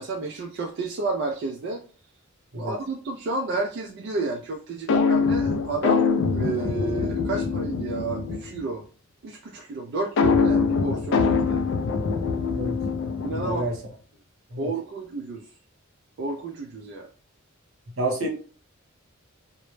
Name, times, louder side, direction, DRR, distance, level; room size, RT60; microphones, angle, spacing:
voice 1, 0.0-1.8 2.5-6.0 6.3-8.8 9.2-11.6 13.2-13.6 14.6-15.4 16.2-17.1, right 3 dB, 55° right, 2 dB, 0.3 m, -31 dB
sound 1, 4.9-8.6 10.2-13.8, left 5 dB, 60° left, 0.3 m, -24 dB
voice 2, 13.3-13.8 14.5-14.7 18.0-18.3, right 1 dB, 70° right, 0 dB, 0.8 m, -28 dB
2.0 x 2.0 x 3.0 m, 0.40 s
head